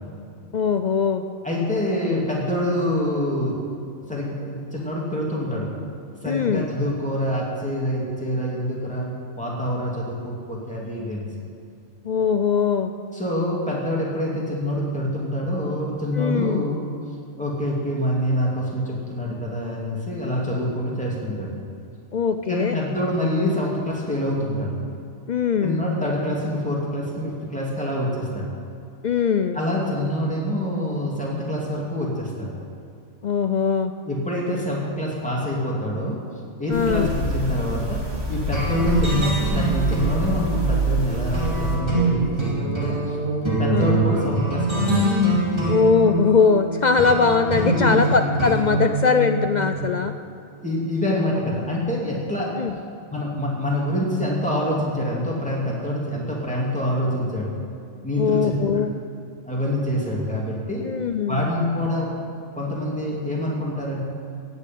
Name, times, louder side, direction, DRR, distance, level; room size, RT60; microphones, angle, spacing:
voice 1, 0.5-1.3 6.2-6.7 12.0-12.9 16.2-16.6 22.1-22.8 25.3-25.9 29.0-29.6 33.2-33.9 36.7-37.1 43.7-44.2 45.7-50.1 52.6-52.7 58.2-58.9 60.8-61.5, left 5 dB, 70° left, 8 dB, 0.4 m, -21 dB
voice 2, 1.4-3.6 4.1-5.7 6.2-11.3 13.1-16.9 17.4-21.5 22.5-24.8 25.6-28.5 29.5-32.5 34.0-36.2 36.6-38.0 38.3-43.2 43.4-45.5 47.7-48.0 50.6-52.5 53.1-57.5 58.0-58.5 59.4-60.9 61.3-62.1 62.6-64.0, left 1 dB, 5° left, -4 dB, 2.8 m, -26 dB
sound 1, 36.7-41.8, right 2 dB, 65° right, 2.8 m, -26 dB
sound 2, 38.5-49.8, right 2 dB, 20° right, 2.8 m, -24 dB
16.5 x 6.8 x 9.4 m, 2.4 s
omnidirectional pair, 1.4 m